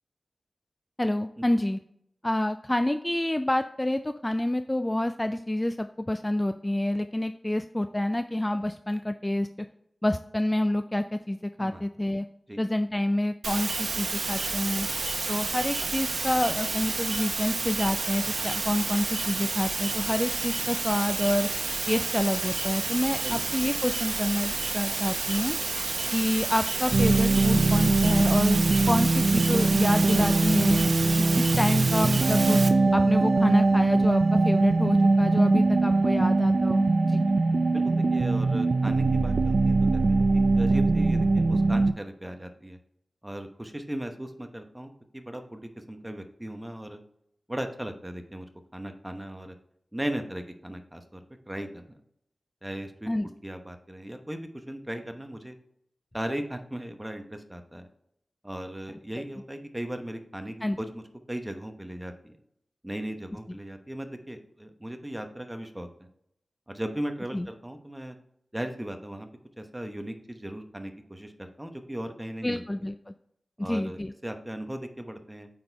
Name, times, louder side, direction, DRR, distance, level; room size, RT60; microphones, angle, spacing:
voice 1, 1.0-1.8 2.2-9.5 10.0-12.3 12.6-14.9 15.3-21.5 21.9-25.6 25.8-30.8 31.2-32.6 32.9-37.2 53.1-53.3 60.6-60.8 63.5-63.6 67.3-67.5 72.4-73.1 73.6-74.1, left 1 dB, 15° left, 8 dB, 0.3 m, -28 dB
sound 1, 13.4-32.7, right 3 dB, 90° right, 0.8 m, -30 dB
sound 2, 26.9-41.9, right 3 dB, 70° right, 0.4 m, -22 dB
voice 2, 37.7-40.3 40.6-42.8 43.2-47.0 47.5-48.4 48.7-49.5 49.9-51.8 52.6-53.1 53.4-55.6 56.1-57.9 58.4-61.0 61.3-62.3 62.8-65.9 66.7-68.2 68.5-69.3 69.6-72.6 73.6-75.5, right 1 dB, 10° right, 6 dB, 0.9 m, -37 dB
8.6 x 4.3 x 3.4 m, 0.73 s
wide cardioid pair, 85°, 0 cm